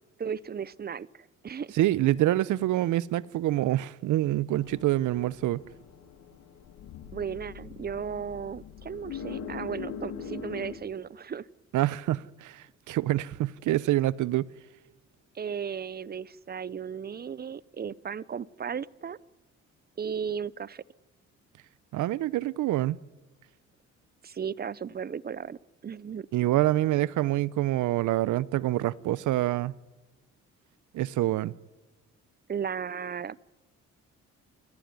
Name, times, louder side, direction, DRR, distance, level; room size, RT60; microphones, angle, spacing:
voice 1, 0.2-1.1 1.4-1.8 7.1-11.5 15.3-19.2 20.0-20.8 24.2-25.6 25.8-26.3 32.5-33.4, right 7 dB, 30° right, 0.7 m, -35 dB
voice 2, 1.8-5.6 11.7-14.5 21.9-23.0 26.3-29.8 30.9-31.5, right 15 dB, 80° right, 0.7 m, -26 dB
sound 1, 4.6-10.7, left 7 dB, 80° left, 2.3 m, -41 dB
27.5 x 14.5 x 9.6 m
cardioid pair, 90°, 30 cm